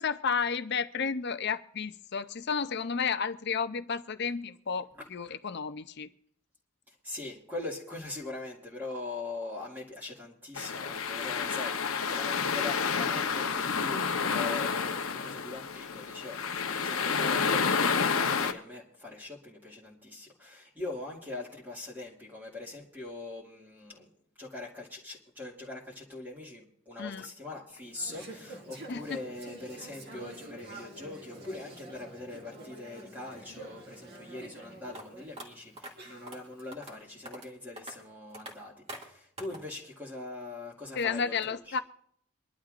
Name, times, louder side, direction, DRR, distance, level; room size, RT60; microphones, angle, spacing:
voice 1, 0.0-6.1 27.0-27.3 28.9-29.2 41.0-41.8, left 5 dB, 50° left, 0.6 m, -32 dB
voice 2, 6.9-11.8 12.1-24.1 24.4-41.8, left 2 dB, 10° right, 2.2 m, -42 dB
sound 1, 10.6-18.5, left 5 dB, 80° left, 0.9 m, -29 dB
Conversation / Chatter, 27.7-36.6, right 2 dB, 50° right, 2.3 m, -48 dB
sound 2, 34.9-35.0 35.4-35.5 35.8-35.9 36.3-36.4 36.7-37.0 37.3-37.5 37.8-37.9 38.3-38.5 38.9-39.1 39.4-39.6, right 1 dB, 30° right, 2.3 m, -43 dB
24.5 x 11.5 x 2.5 m
head